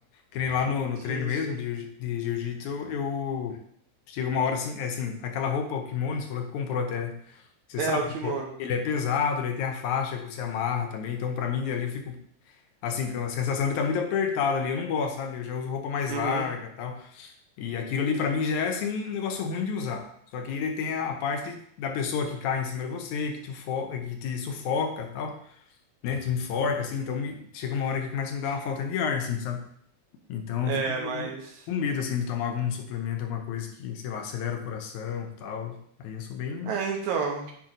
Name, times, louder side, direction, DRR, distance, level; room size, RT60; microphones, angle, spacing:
voice 1, 0.3-3.6 4.1-7.4 7.7-12.2 12.8-20.1 20.3-25.4 26.0-29.7 30.3-31.3 31.7-36.7, left 6 dB, 80° left, 4 dB, 2.2 m, -30 dB
voice 2, 1.1-1.6 7.8-8.5 16.1-16.5 30.7-31.7 36.6-37.5, right 5 dB, 75° right, 1 dB, 2.1 m, -30 dB
8.5 x 3.0 x 5.0 m, 0.64 s
omnidirectional pair, 3.5 m